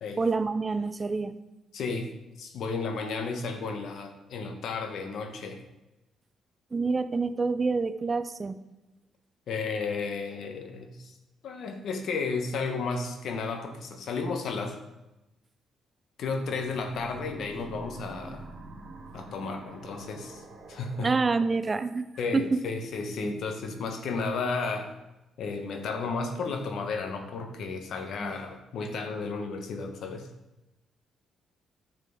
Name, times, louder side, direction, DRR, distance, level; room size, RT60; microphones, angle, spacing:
voice 1, 0.2-1.3 6.7-8.6 21.0-22.1 22.3-22.6 23.2-23.4 28.2-28.4, right 4 dB, 30° right, 11 dB, 0.5 m, -27 dB
voice 2, 1.7-2.1 2.4-5.6 9.5-11.1 11.4-14.8 16.2-18.5 19.1-20.4 20.7-21.1 22.2-24.9 25.4-30.3, left 4 dB, 70° left, 6 dB, 1.2 m, -33 dB
sound 1, 16.4-21.5, right 2 dB, 65° right, 1.9 m, -46 dB
9.7 x 6.6 x 3.9 m, 0.98 s
cardioid pair, 90°, 0 cm